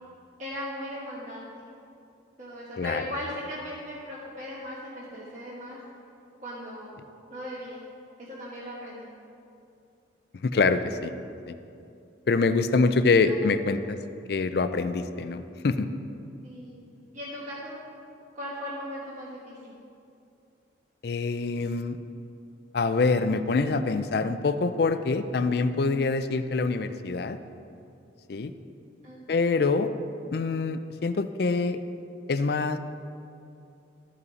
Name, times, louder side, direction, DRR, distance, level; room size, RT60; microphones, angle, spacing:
voice 1, 0.4-1.6 2.4-5.8 6.4-6.9 7.3-7.8 8.2-9.1 13.3-13.4 16.4-16.8 17.1-17.7 18.3-19.7 29.0-29.2, left 1 dB, 40° right, -8 dB, 1.3 m, -38 dB
voice 2, 10.4-11.1 11.5-11.6 12.3-14.0 14.3-15.9 21.0-22.0 22.7-27.4 28.3-28.5 29.3-29.9 30.3-31.8 32.3-32.8, left 4 dB, 55° left, 11 dB, 0.4 m, -25 dB
13.5 x 5.6 x 4.0 m, 2.6 s
head